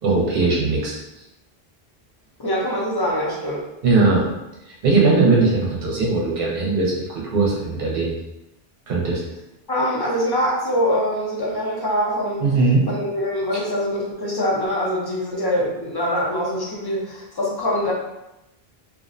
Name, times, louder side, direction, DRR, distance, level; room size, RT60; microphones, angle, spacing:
voice 1, 0.0-1.0 3.8-4.3 4.8-8.2 8.9-9.2 12.4-12.9, right 3 dB, 65° right, -3 dB, 0.8 m, -19 dB
voice 2, 2.4-3.6 9.7-12.4 12.9-17.9, equal, 30° left, -4 dB, 0.5 m, -23 dB
2.5 x 2.0 x 2.4 m, 0.93 s
omnidirectional pair, 1.0 m